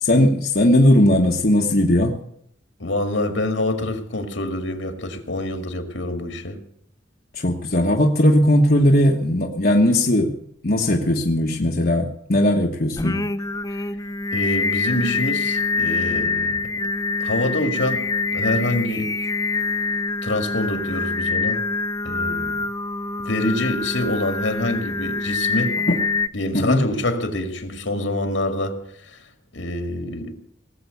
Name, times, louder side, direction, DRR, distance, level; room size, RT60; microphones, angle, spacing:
voice 1, 0.0-2.1 7.3-10.3 10.6-13.2 25.9-26.0 26.5-26.8, left 1 dB, 50° left, 0 dB, 1.3 m, -18 dB
voice 2, 2.8-6.6 14.3-16.8 17.2-18.0 18.3-19.1 20.2-21.6 22.0-22.6 23.2-25.7 26.3-28.8 29.1-29.2 29.5-30.3, left 1 dB, 75° left, 6 dB, 2.2 m, -26 dB
Singing, 13.0-26.3, left 3 dB, 20° left, 0.5 m, -25 dB
19.0 x 7.8 x 8.3 m, 0.70 s
head